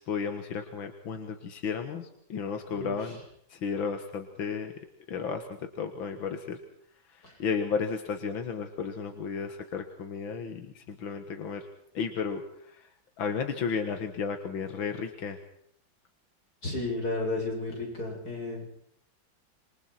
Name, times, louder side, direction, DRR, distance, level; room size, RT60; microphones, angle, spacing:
voice 1, 0.0-3.2 3.5-4.7 5.1-6.6 7.1-11.7 11.9-12.9 13.2-15.4, left 6 dB, 90° left, 6 dB, 2.4 m, -33 dB
voice 2, 2.7-3.2 7.2-7.4 16.6-18.7, left 2 dB, 50° left, 0 dB, 8.4 m, -33 dB
27.5 x 23.5 x 4.4 m, 0.70 s
omnidirectional pair, 2.1 m